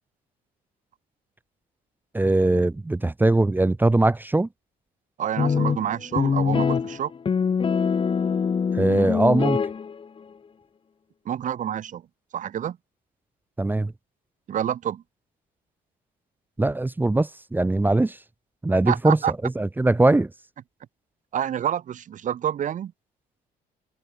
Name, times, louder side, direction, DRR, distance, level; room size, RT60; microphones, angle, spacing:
voice 1, 2.1-4.5 8.7-9.6 13.6-13.9 16.6-18.2 18.6-20.3, right 2 dB, 10° right, 1.1 m, -21 dB
voice 2, 5.2-7.1 11.2-12.0 12.3-12.8 14.5-15.0 18.9-19.3 21.3-22.9, right 10 dB, 50° right, 1.4 m, -28 dB
sound 1, 5.4-10.2, left 6 dB, 30° left, 1.6 m, -24 dB
cardioid pair, 110°, 17 cm